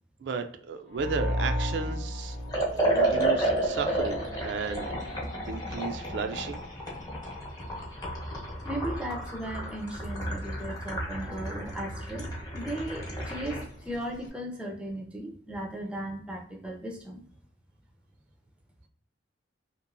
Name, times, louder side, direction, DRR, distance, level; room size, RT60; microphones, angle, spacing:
voice 1, 0.2-2.4 2.7-5.1 5.5-6.6, right 5 dB, 65° right, 6 dB, 0.3 m, -34 dB
sound 1, 0.9-3.8, equal, 75° left, 0.6 m, -32 dB
Liquid, 2.5-13.7, right 1 dB, 20° left, 0.8 m, -31 dB
voice 2, 8.7-12.3 12.5-17.2, right 1 dB, 5° right, 1 dB, 0.5 m, -36 dB
3.0 x 2.8 x 2.5 m, 0.62 s
head